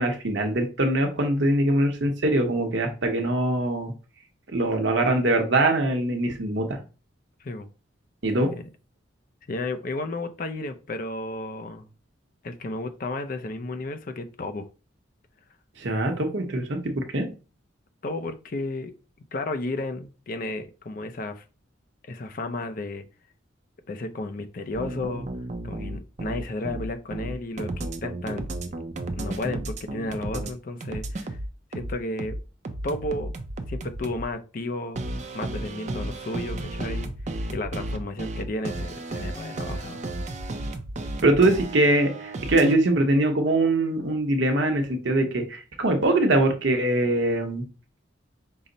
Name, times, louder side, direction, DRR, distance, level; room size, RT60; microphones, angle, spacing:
voice 1, 0.0-3.9 4.5-6.8 8.2-8.5 15.8-17.3 41.2-47.6, right 1 dB, 65° right, 4 dB, 0.9 m, -23 dB
voice 2, 9.5-11.9 12.4-14.7 18.0-18.9 19.3-21.4 22.1-23.0 23.9-25.3 25.6-28.4 29.1-31.4 31.7-32.4 32.8-33.4 33.7-35.0 35.3-37.1 37.5-40.0, left 2 dB, 45° left, 7 dB, 0.5 m, -33 dB
sound 1, 24.7-30.5 30.8-34.2 35.0-42.7, right 2 dB, 35° right, 0.4 m, -33 dB
5.6 x 2.1 x 3.8 m, 0.34 s
head